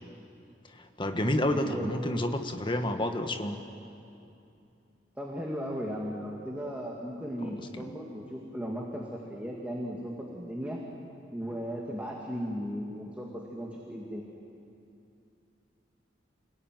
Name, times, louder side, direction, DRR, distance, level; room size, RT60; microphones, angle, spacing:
voice 1, 0.7-3.6 7.4-7.9, left 1 dB, 25° left, 6 dB, 1.6 m, -30 dB
voice 2, 1.3-1.9 5.2-10.8 11.3-14.2, equal, 10° right, -2 dB, 2.3 m, -36 dB
28.5 x 20.0 x 9.3 m, 2.7 s
head